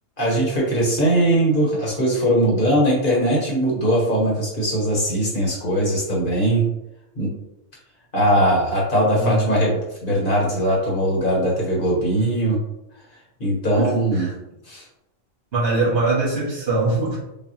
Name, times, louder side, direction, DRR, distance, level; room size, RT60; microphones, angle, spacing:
voice 1, 0.2-6.7 7.2-7.3 8.1-12.6 13.4-14.3 14.7-14.8, right 1 dB, 50° left, -4 dB, 1.2 m, -20 dB
voice 2, 15.5-17.2, right 3 dB, 60° right, -6 dB, 1.5 m, -21 dB
5.3 x 2.3 x 2.7 m, 0.88 s
omnidirectional pair, 1.2 m